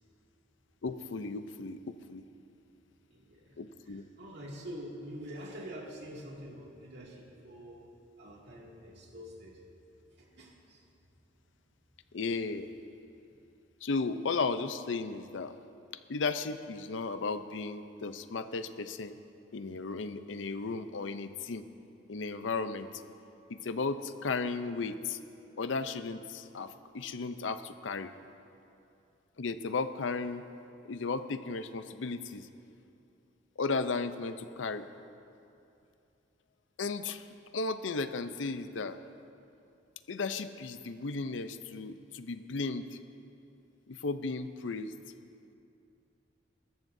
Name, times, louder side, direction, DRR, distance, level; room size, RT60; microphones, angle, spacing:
voice 1, 0.8-2.2 3.6-4.0 12.1-12.7 13.8-15.5 16.1-19.2 19.5-21.7 22.1-23.0 23.5-25.2 25.6-28.1 29.4-30.4 30.9-32.5 33.6-34.9 36.8-37.2 37.5-39.0 40.1-42.9 43.9-44.9, left 4 dB, 90° left, 11 dB, 0.6 m, -35 dB
voice 2, 3.1-3.6 4.2-7.8 8.2-9.6 10.2-10.8, equal, 65° right, -2 dB, 2.3 m, -45 dB
22.0 x 13.5 x 2.7 m, 2.7 s
head